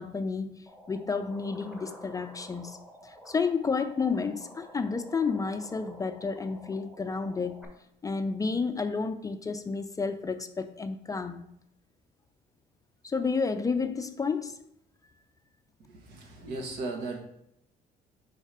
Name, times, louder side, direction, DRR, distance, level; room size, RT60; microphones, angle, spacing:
voice 1, 0.0-2.8 3.0-7.6 8.0-11.4 13.0-14.6, left 4 dB, 20° left, 0.4 m, -31 dB
sound 1, 0.7-7.7, equal, 5° right, 1.1 m, -50 dB
voice 2, 16.0-17.2, right 3 dB, 75° right, 1.4 m, -36 dB
5.5 x 4.0 x 4.8 m
cardioid pair, 110°, 17 cm